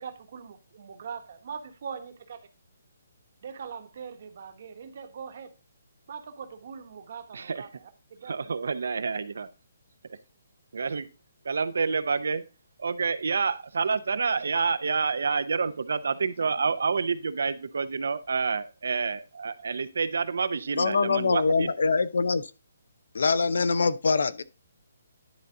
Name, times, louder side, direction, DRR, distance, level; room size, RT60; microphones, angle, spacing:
voice 1, 0.0-2.4 3.4-5.5 6.1-8.4, right 6 dB, 35° right, 1.1 m, -41 dB
voice 2, 7.3-7.6 8.2-9.5 10.7-11.1 11.4-12.4 12.8-21.7, right 5 dB, 60° right, 0.6 m, -28 dB
voice 3, 20.7-22.5 23.1-24.4, left 4 dB, 65° left, 0.6 m, -24 dB
10.5 x 4.1 x 3.7 m
hypercardioid pair, 180°, 0 cm